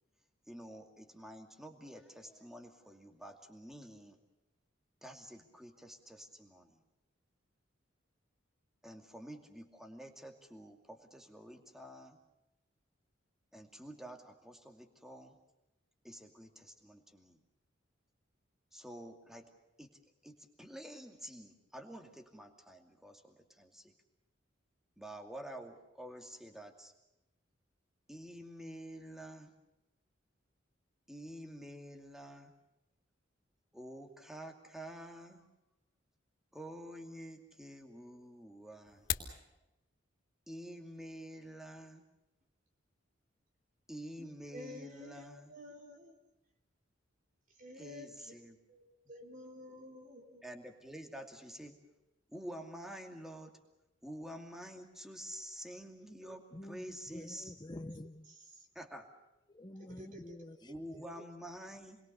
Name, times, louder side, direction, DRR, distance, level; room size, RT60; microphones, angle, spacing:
voice 1, 0.5-4.2 5.0-6.8 8.8-12.2 13.5-15.4 16.0-17.4 18.7-19.5 19.8-19.9 20.2-23.9 25.0-26.9 28.1-29.5 31.1-32.5 33.7-35.5 36.5-39.4 40.5-42.0 43.9-45.5 47.7-48.6 50.4-51.8 52.3-53.6 54.0-57.6 58.7-59.1 60.6-62.0, equal, ahead, 2.5 m, -49 dB
sound 1, 38.8-39.4, left 9 dB, 70° left, 2.9 m, -37 dB
voice 2, 44.2-46.1 47.6-48.3 48.7-50.4 56.2-56.4 58.3-58.4 59.9-60.4, left 1 dB, 45° right, 3.9 m, -51 dB
voice 3, 56.5-58.3 59.5-60.7, left 1 dB, 20° left, 0.8 m, -48 dB
29.5 x 22.0 x 6.8 m
head